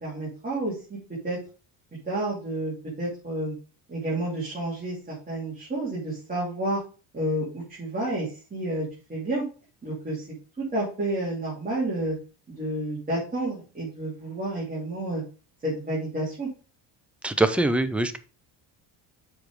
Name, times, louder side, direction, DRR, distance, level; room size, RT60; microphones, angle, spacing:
voice 1, 0.0-1.0 1.2-1.4 2.0-3.5 3.9-6.8 7.1-9.4 9.8-10.3 10.6-12.1 12.5-15.2 15.6-16.5, right 1 dB, 20° right, -6 dB, 3.2 m, -30 dB
voice 2, 17.2-18.2, right 2 dB, 5° right, 10 dB, 0.4 m, -23 dB
7.1 x 4.7 x 5.0 m, 0.35 s
cardioid pair, 140°, 47 cm